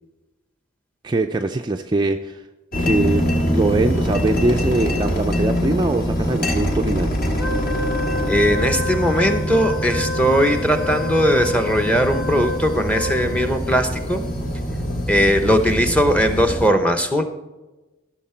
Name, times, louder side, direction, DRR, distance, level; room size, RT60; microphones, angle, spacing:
voice 1, 1.0-2.4 2.8-7.5, right 2 dB, 20° right, 4 dB, 0.3 m, -22 dB
sound 1, 2.7-16.7, equal, 45° left, 1.5 m, -24 dB
Wind instrument woodwind instrument, 7.4-13.7, left 3 dB, 70° left, 2.1 m, -29 dB
voice 2, 8.3-14.2 15.1-17.2, equal, 5° left, 7 dB, 0.8 m, -19 dB
14.0 x 6.6 x 4.4 m, 1.1 s
head